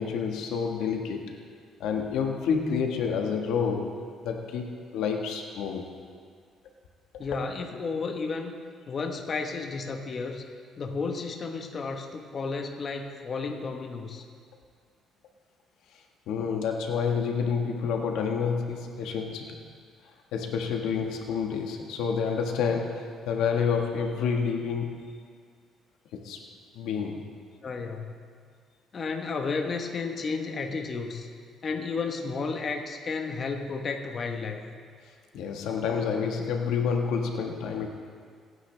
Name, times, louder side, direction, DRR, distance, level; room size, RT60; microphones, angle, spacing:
voice 1, 0.0-1.4 1.8-4.0 4.2-5.9 16.3-19.6 20.3-25.0 26.2-26.4 26.7-27.2 35.3-37.9, left 6 dB, 85° left, 2 dB, 1.5 m, -29 dB
voice 2, 7.2-8.6 8.9-10.4 10.8-14.2 27.0-27.2 27.6-28.1 28.9-31.3 31.6-34.6, left 4 dB, 40° left, 3 dB, 1.2 m, -32 dB
24.5 x 9.6 x 3.4 m, 2.1 s
cardioid pair, 115°, 0 cm